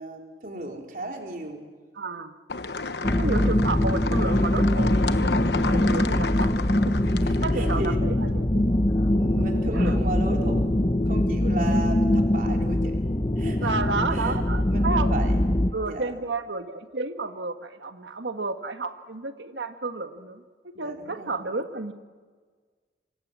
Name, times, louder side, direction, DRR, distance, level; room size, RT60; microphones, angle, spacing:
voice 1, 0.0-1.6 7.2-8.0 9.1-13.0 13.4-14.3 14.7-15.4 15.8-16.2 20.7-21.5, right 2 dB, 50° right, 2 dB, 3.8 m, -35 dB
voice 2, 2.0-2.4 3.2-5.0 5.7-6.9 7.4-8.7 9.0-9.1 9.4-9.5 9.7-10.0 13.6-15.1 15.7-21.9, right 3 dB, 85° right, 8 dB, 1.6 m, -31 dB
sound 1, 2.5-8.0, left 3 dB, 65° left, 1.1 m, -32 dB
sound 2, 3.0-15.7, left 1 dB, 25° left, 0.9 m, -23 dB
26.0 x 25.5 x 7.5 m, 1.5 s
head